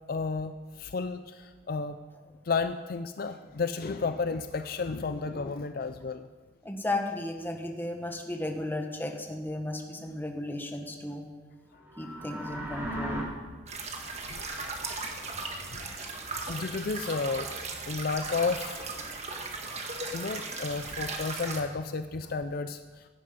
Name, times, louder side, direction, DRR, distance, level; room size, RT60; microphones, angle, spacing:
voice 1, 0.1-2.0 2.5-6.3 14.3-14.5 15.7-15.9 16.5-17.5 17.9-18.8 20.1-23.1, left 4 dB, 55° left, 9 dB, 0.5 m, -32 dB
voice 2, 6.6-11.2 12.0-13.3 15.7-16.5, left 1 dB, 10° left, 3 dB, 1.5 m, -35 dB
sound 1, 11.8-13.2, equal, 15° right, 3.4 m, -36 dB
sound 2, 13.7-21.6, right 3 dB, 35° right, 1.6 m, -37 dB
16.5 x 10.0 x 5.3 m, 1.4 s
head